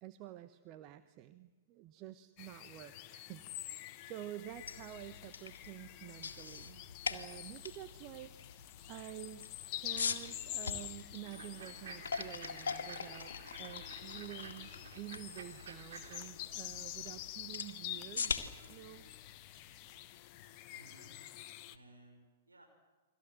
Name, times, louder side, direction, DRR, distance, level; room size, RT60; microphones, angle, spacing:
voice 1, 0.0-9.5 9.7-13.3 13.6-14.7 15.0-18.4 18.7-19.1, right 14 dB, 35° right, 11 dB, 1.0 m, -49 dB
sound 1, 2.4-21.8, left 14 dB, 35° left, 1.1 m, -48 dB
sound 2, 4.5-20.4, left 5 dB, 65° left, 2.1 m, -44 dB
sound 3, 11.3-16.3, right 5 dB, 55° right, 3.6 m, -52 dB
voice 2, 20.7-22.7, right 1 dB, 80° right, 3 dB, 5.2 m, -61 dB
30.0 x 23.0 x 7.9 m, 1.2 s
figure-of-eight pair, 105°, 0 cm